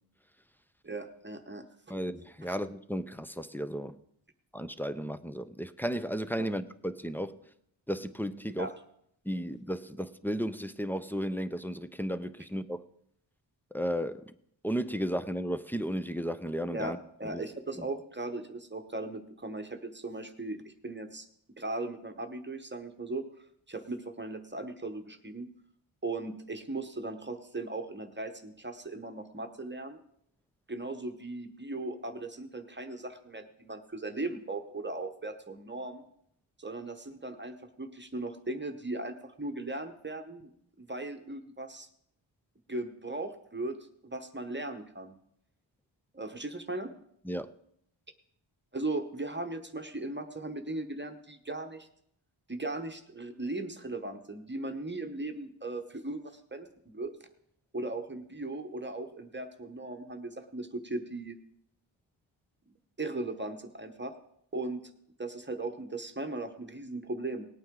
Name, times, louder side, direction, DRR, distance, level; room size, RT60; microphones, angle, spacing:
voice 1, 0.8-1.6 2.4-2.6 6.4-6.5 8.6-8.7 16.7-16.9 17.2-21.3 21.6-23.2 23.7-25.5 26.0-30.0 30.7-36.0 36.6-40.5 40.8-41.9 42.7-43.8 44.0-45.1 46.1-46.9 48.7-51.9 52.5-57.1 57.7-61.4 63.0-64.1 64.5-64.8 65.2-67.5, right 2 dB, 25° right, 6 dB, 1.0 m, -38 dB
voice 2, 1.9-4.0 4.5-7.4 7.9-8.7 9.3-12.8 13.7-14.3 14.6-17.0 17.2-17.4 17.8-17.9 47.2-47.5, equal, 5° left, 12 dB, 0.4 m, -34 dB
18.5 x 8.9 x 3.7 m, 0.71 s
wide cardioid pair, 90°, 48 cm